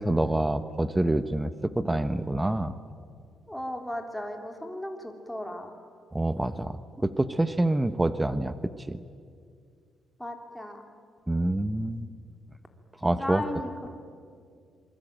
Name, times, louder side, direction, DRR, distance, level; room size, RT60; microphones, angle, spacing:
voice 1, 0.0-2.7 6.1-8.5 8.9-9.0 11.3-12.1 13.0-13.4, right 1 dB, 10° right, 12 dB, 1.0 m, -26 dB
voice 2, 3.5-5.7 10.2-10.8 13.0-13.9, left 1 dB, 5° left, 3 dB, 3.3 m, -36 dB
27.0 x 22.5 x 8.9 m, 2.2 s
cardioid pair, 90°, 0 cm